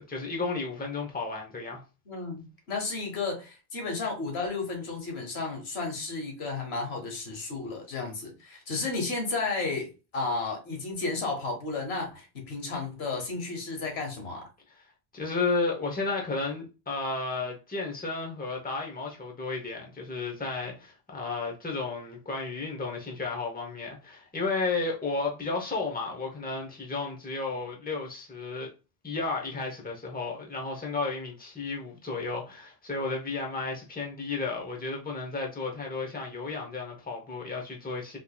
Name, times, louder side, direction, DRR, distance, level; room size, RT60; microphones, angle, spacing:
voice 1, 0.0-1.8 14.8-14.9 15.1-28.7 29.0-38.2, left 3 dB, 10° left, 0.7 m, -33 dB
voice 2, 2.1-9.9 10.1-14.5, left 3 dB, 85° left, 1.3 m, -33 dB
3.8 x 3.0 x 2.3 m
omnidirectional pair, 1.0 m